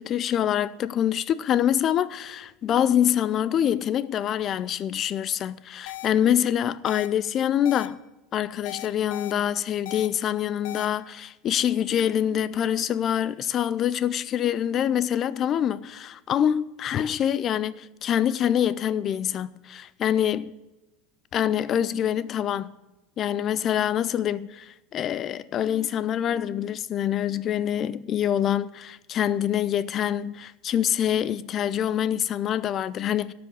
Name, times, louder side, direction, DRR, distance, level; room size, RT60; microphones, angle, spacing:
voice 1, 0.0-8.0 8.3-20.5 21.3-22.7 23.2-33.3, left 10 dB, 35° left, 0.4 m, -25 dB
sound 1, 5.9-6.1 6.9-7.1 7.6-7.9 8.7-9.3 9.9-10.1 10.6-10.9, left 16 dB, 85° left, 0.8 m, -37 dB
13.0 x 6.0 x 7.0 m
supercardioid pair, 150°, 0 cm